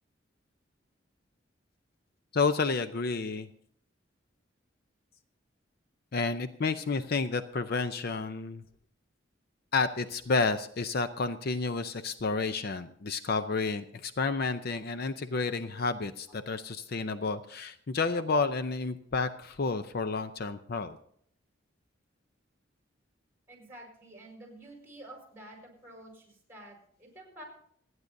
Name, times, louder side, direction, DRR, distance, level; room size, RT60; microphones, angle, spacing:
voice 1, 2.3-3.5 6.1-8.6 9.7-21.0, left 4 dB, 55° left, 10 dB, 0.6 m, -30 dB
voice 2, 23.5-27.4, right 1 dB, 10° right, 0 dB, 4.8 m, -50 dB
28.0 x 9.6 x 2.6 m, 0.65 s
head